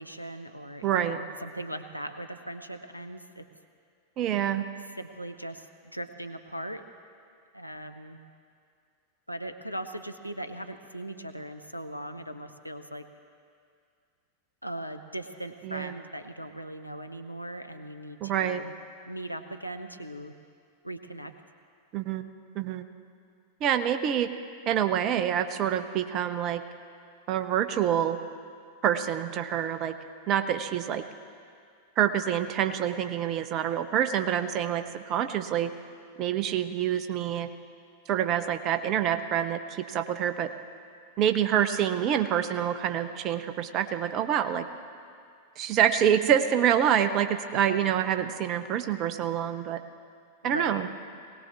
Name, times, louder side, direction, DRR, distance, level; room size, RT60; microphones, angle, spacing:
voice 1, 0.0-3.5 5.0-5.7 5.9-6.8 7.5-8.2 9.3-13.0 14.6-18.7 19.0-20.3 20.8-21.3 47.5-48.0 50.4-50.9, right 1 dB, 90° left, 7 dB, 0.7 m, -39 dB
voice 2, 0.8-1.2 4.2-4.6 15.6-15.9 18.2-18.6 21.9-22.3 22.5-22.8 23.6-24.3 24.7-26.6 27.3-28.2 28.8-29.9 30.3-31.0 32.0-35.7 36.2-37.5 38.1-40.5 41.2-44.7 45.6-49.8 50.4-50.9, right 9 dB, 35° right, 9 dB, 0.8 m, -26 dB
20.0 x 18.0 x 3.5 m, 2.3 s
figure-of-eight pair, 90°, 0 cm